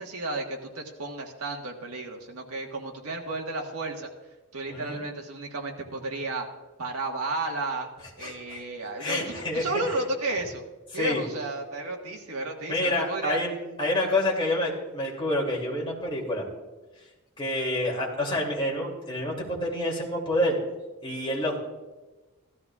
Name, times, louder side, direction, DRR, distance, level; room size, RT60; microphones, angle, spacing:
voice 1, 0.0-4.1 4.5-6.5 6.8-7.9 8.2-10.6 10.9-13.4, right 2 dB, 80° right, 1 dB, 1.5 m, -33 dB
voice 2, 4.7-5.0 8.2-8.6 9.0-9.7 10.9-11.2 12.7-13.5 13.8-16.4 17.4-20.6 21.0-21.6, left 1 dB, 25° left, -3 dB, 2.7 m, -28 dB
16.0 x 13.0 x 2.4 m, 1.1 s
head